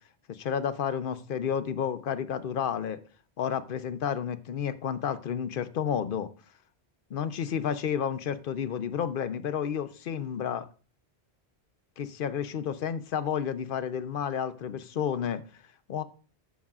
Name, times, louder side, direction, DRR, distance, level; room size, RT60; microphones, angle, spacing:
voice 1, 0.3-3.0 3.4-6.3 7.1-10.7 12.0-15.4 15.9-16.0, left 8 dB, 60° left, 12 dB, 0.8 m, -31 dB
12.5 x 6.2 x 2.4 m, 0.36 s
omnidirectional pair, 1.1 m